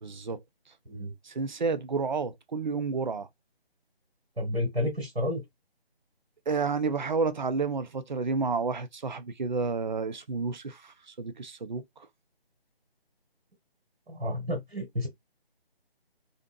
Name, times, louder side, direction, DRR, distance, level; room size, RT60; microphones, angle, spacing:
voice 1, 0.0-0.4 1.2-3.3 6.5-11.8, right 4 dB, 50° right, 0.4 m, -30 dB
voice 2, 4.4-5.4 14.1-15.1, left 1 dB, 80° right, 1.4 m, -30 dB
2.6 x 2.4 x 2.5 m
figure-of-eight pair, 155°, 31 cm